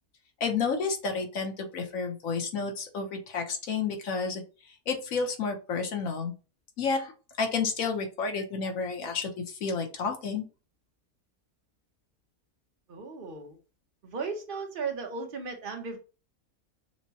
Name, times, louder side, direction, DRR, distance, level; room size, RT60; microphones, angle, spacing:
voice 1, 0.4-4.4 4.7-6.3 6.8-7.1 7.4-10.5, left 5 dB, 65° left, 3 dB, 1.2 m, -31 dB
voice 2, 12.9-13.6 14.0-16.0, right 4 dB, 45° right, 4 dB, 0.8 m, -36 dB
6.1 x 2.1 x 2.7 m, 0.33 s
omnidirectional pair, 1.6 m